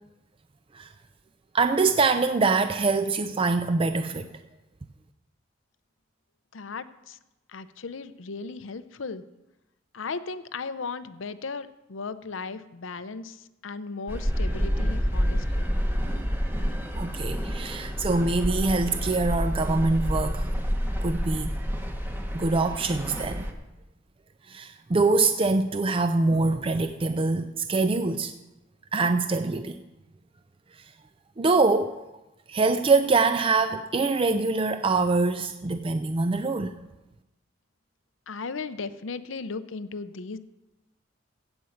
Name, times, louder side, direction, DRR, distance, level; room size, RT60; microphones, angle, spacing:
voice 1, 1.5-4.3 16.9-20.5 21.0-21.6 22.3-23.5 24.5-28.3 28.9-29.8 30.7-30.9 31.4-32.0 32.5-36.8, right 3 dB, 30° right, 9 dB, 0.4 m, -24 dB
voice 2, 6.5-7.2 7.5-9.2 9.9-15.7 38.3-40.4, left 4 dB, 80° left, 13 dB, 0.7 m, -36 dB
sound 1, 14.1-23.5, equal, 10° right, 1.1 m, -28 dB
16.0 x 5.4 x 7.9 m, 1.0 s
head